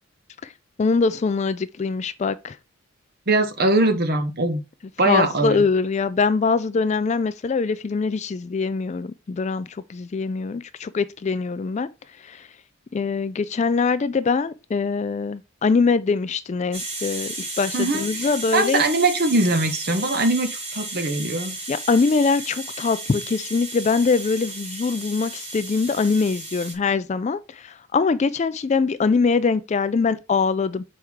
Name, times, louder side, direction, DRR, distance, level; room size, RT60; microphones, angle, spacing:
voice 1, 0.8-2.6 5.1-11.9 12.3-12.4 12.9-18.8 21.7-30.8, left 4 dB, 30° left, 0.3 m, -23 dB
voice 2, 3.3-4.6 5.0-5.6 17.7-21.6, right 2 dB, 45° right, 1.0 m, -22 dB
sound 1, 16.7-26.7, right 2 dB, 30° right, 1.7 m, -34 dB
6.2 x 4.5 x 3.6 m
head